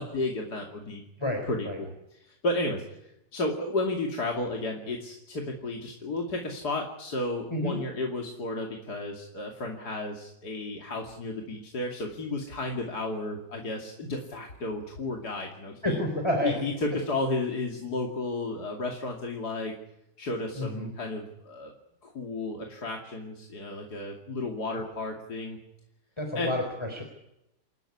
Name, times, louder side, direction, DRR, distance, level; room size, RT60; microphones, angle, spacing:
voice 1, 0.0-1.0 1.4-16.0 16.4-19.7 20.2-21.7 22.0-25.6 26.3-26.5, left 2 dB, 60° left, 1 dB, 3.1 m, -33 dB
voice 2, 1.2-1.8 7.5-7.8 15.8-16.5 20.6-20.9 26.2-27.0, left 1 dB, 15° left, 3 dB, 4.0 m, -29 dB
28.5 x 13.0 x 9.9 m, 0.85 s
omnidirectional pair, 1.9 m